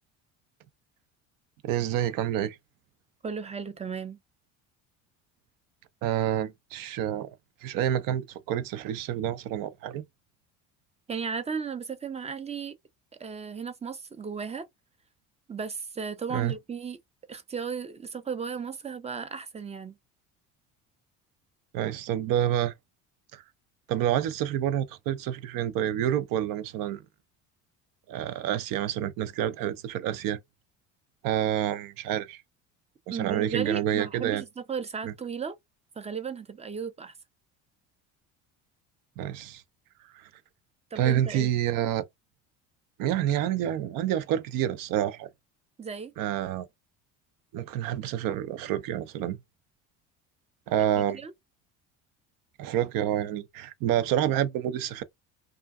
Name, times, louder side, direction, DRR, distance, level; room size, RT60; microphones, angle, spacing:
voice 1, 1.6-2.6 6.0-7.3 7.6-10.0 16.3-16.5 21.7-22.7 23.3-23.4 23.9-27.0 28.1-30.4 31.2-32.4 33.1-34.4 39.2-39.6 40.1-40.3 41.0-42.0 43.0-45.3 46.2-46.7 47.5-49.4 50.7-51.2 52.6-55.0, right 11 dB, 65° right, 0.6 m, -28 dB
voice 2, 3.2-4.2 11.1-12.7 13.2-14.7 15.5-17.0 17.3-19.9 33.1-35.6 36.0-37.1 40.9-41.5 45.8-46.1 51.1-51.3, right 6 dB, 20° right, 0.5 m, -35 dB
2.5 x 2.4 x 2.3 m
supercardioid pair, 75°, 37 cm